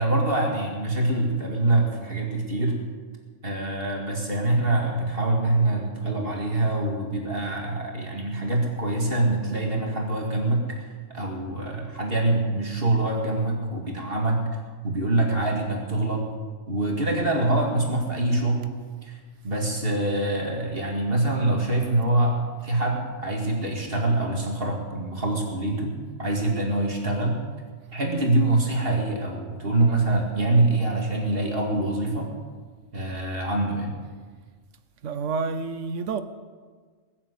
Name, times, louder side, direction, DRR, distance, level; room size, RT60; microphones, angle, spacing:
voice 1, 0.0-2.7 3.4-14.4 14.8-16.2 16.7-18.7 19.0-19.2 19.4-22.3 22.6-25.9 26.2-27.4 27.9-32.3 32.9-33.9, right 2 dB, 45° right, 2.4 m, -25 dB
voice 2, 35.0-36.2, right 4 dB, 70° right, 1.1 m, -29 dB
20.5 x 7.4 x 8.1 m
omnidirectional pair, 1.3 m